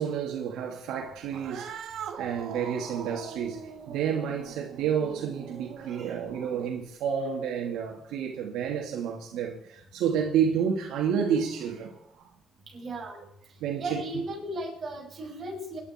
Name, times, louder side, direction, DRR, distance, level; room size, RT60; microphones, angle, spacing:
voice 1, 0.0-1.9 2.2-3.6 3.9-12.2 13.6-14.0, right 7 dB, 85° right, 2.6 m, -30 dB
Cat, 1.3-6.9, right 7 dB, 60° right, 1.7 m, -41 dB
voice 2, 12.7-13.2 13.7-15.8, right 1 dB, 30° right, 6.6 m, -36 dB
25.0 x 11.0 x 4.5 m
cardioid pair, 145°, 0 cm